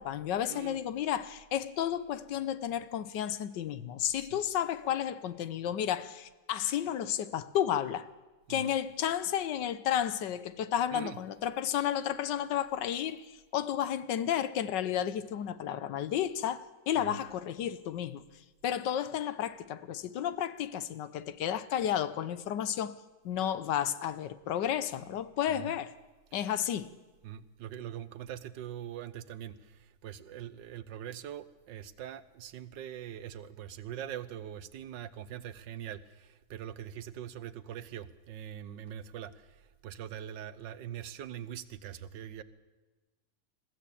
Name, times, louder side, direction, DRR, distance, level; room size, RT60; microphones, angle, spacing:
voice 1, 0.0-8.1 8.5-18.2 18.6-22.9 23.2-25.9 26.3-26.9, left 10 dB, 80° left, 1.4 m, -32 dB
voice 2, 27.2-42.4, right 10 dB, 90° right, 1.6 m, -43 dB
21.5 x 14.5 x 8.5 m
omnidirectional pair, 1.9 m